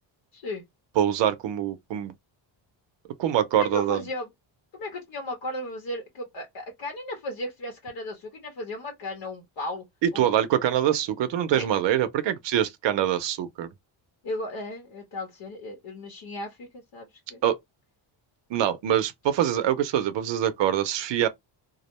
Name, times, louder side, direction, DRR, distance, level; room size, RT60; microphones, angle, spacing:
voice 1, 0.3-0.6 3.6-4.3 4.7-9.8 10.1-10.3 11.5-11.7 14.2-17.4, left 1 dB, 70° left, 1.0 m, -35 dB
voice 2, 1.0-2.1 3.2-4.0 10.0-13.7 17.4-17.6 18.5-21.3, right 10 dB, 65° right, 0.6 m, -24 dB
2.4 x 2.1 x 2.9 m
cardioid pair, 165°, 46 cm